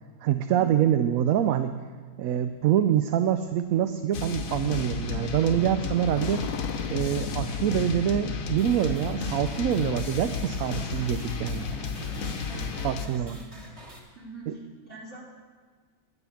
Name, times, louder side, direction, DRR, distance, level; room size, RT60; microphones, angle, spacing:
voice 1, 0.2-1.7 2.2-6.4 6.9-11.7 12.8-13.4 14.5-14.6, right 10 dB, 75° right, 9 dB, 1.0 m, -25 dB
Motorcycle, 2.3-12.2, left 6 dB, 90° left, 1.3 m, -40 dB
sound 1, 4.1-13.1, left 5 dB, 65° left, 1.3 m, -33 dB
sound 2, 8.6-14.0, right 1 dB, 20° right, 1.8 m, -48 dB
voice 2, 12.5-13.7 14.2-15.2, right 2 dB, 50° right, -5 dB, 3.7 m, -44 dB
11.0 x 10.0 x 7.0 m, 1.5 s
omnidirectional pair, 1.6 m